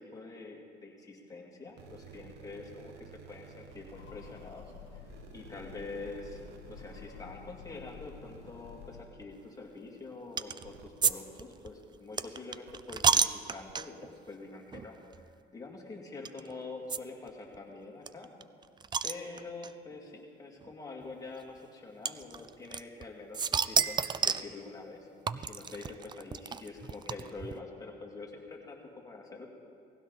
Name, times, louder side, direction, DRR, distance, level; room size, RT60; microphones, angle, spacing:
voice 1, 0.0-4.7 5.3-15.0 15.5-18.3 19.0-25.1 25.3-28.8 29.0-29.5, left 3 dB, 20° left, -1 dB, 2.4 m, -45 dB
sound 1, 1.7-12.1 12.6-12.8 13.2-13.3 13.7-13.8, right 7 dB, 85° right, 0.9 m, -55 dB
Train, 3.6-9.4, left 8 dB, 85° left, 0.7 m, -51 dB
sound 2, 10.4-10.6 11.0-11.1 11.4-14.1 14.7-14.9 15.1-15.2 16.2-16.4 16.9-17.0 17.3-17.4 17.5-17.6 18.1-19.7 20.6-20.7 22.0-23.0 23.3-24.5 25.3-27.5, right 6 dB, 25° right, 0.4 m, -30 dB
18.5 x 16.0 x 4.1 m, 2.4 s
cardioid pair, 110°, 17 cm